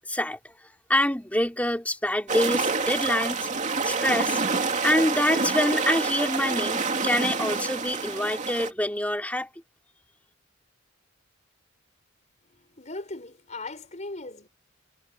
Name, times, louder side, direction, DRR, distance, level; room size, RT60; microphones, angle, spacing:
voice 1, 0.1-0.4 0.9-3.5 3.8-4.4 4.8-9.5, left 1 dB, 5° left, 3.2 m, -26 dB
sound 1, 2.3-8.7, right 4 dB, 35° right, 2.7 m, -27 dB
voice 2, 12.5-14.5, left 2 dB, 35° left, 5.3 m, -38 dB
head